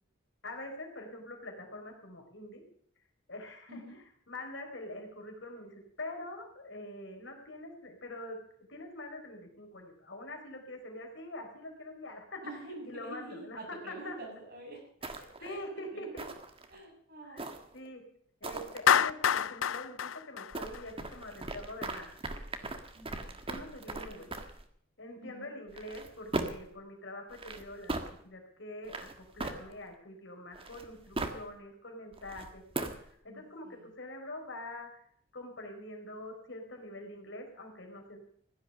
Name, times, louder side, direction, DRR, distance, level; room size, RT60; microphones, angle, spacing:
voice 1, 0.4-2.6 3.3-3.8 4.3-8.4 8.7-12.4 12.9-14.2 15.4-16.2 17.2-17.5 17.7-18.0 18.4-22.1 23.4-24.3 25.0-34.9 35.3-38.2, left 1 dB, 65° left, 3 dB, 4.2 m, -44 dB
voice 2, 12.4-14.8 15.4-16.2 16.7-17.5 22.9-23.5 25.2-25.5 33.3-33.9, right 1 dB, 55° right, -1 dB, 7.5 m, -47 dB
sound 1, 15.0-15.5 16.2-16.7 17.4-17.9 18.4-18.8 20.5-24.6 25.7-26.7 27.3-28.1 28.8-29.9 30.5-31.5 32.1-33.1, right 2 dB, 30° right, 1.6 m, -39 dB
Clapping, 18.9-21.2, left 8 dB, 90° left, 0.5 m, -27 dB
16.0 x 12.0 x 6.7 m, 0.63 s
head